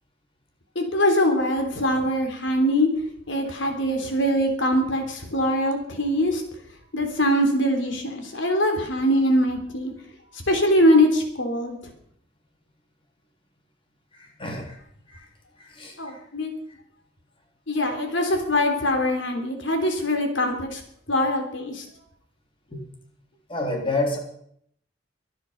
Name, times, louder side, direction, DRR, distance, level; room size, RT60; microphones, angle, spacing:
voice 1, 0.8-2.9 3.3-6.4 6.9-9.9 10.5-11.8 16.0-16.5 17.7-20.8 21.1-21.8, equal, 90° left, 4 dB, 3.5 m, -22 dB
voice 2, 14.1-14.7 15.1-15.2 15.6-16.2 22.7-22.8 23.5-24.2, left 2 dB, 30° left, 1 dB, 3.4 m, -29 dB
24.0 x 9.8 x 5.4 m, 0.67 s
head